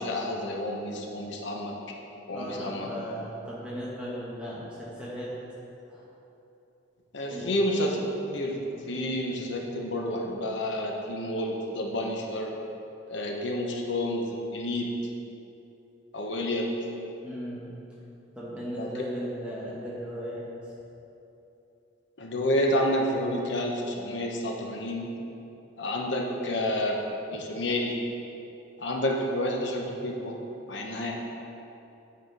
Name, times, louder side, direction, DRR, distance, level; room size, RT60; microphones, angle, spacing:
voice 1, 0.0-2.0 2.3-2.9 7.1-8.0 8.3-12.5 13.1-14.9 16.1-16.7 18.8-18.9 22.2-25.1 25.8-27.0 27.3-28.0 28.8-30.4 30.7-31.1, left 1 dB, 70° left, 0 dB, 0.9 m, -29 dB
voice 2, 2.3-5.3 5.9-6.1 7.3-7.5 17.2-17.6 18.3-20.7, equal, 5° right, -7 dB, 1.2 m, -37 dB
8.3 x 4.3 x 5.2 m, 2.9 s
head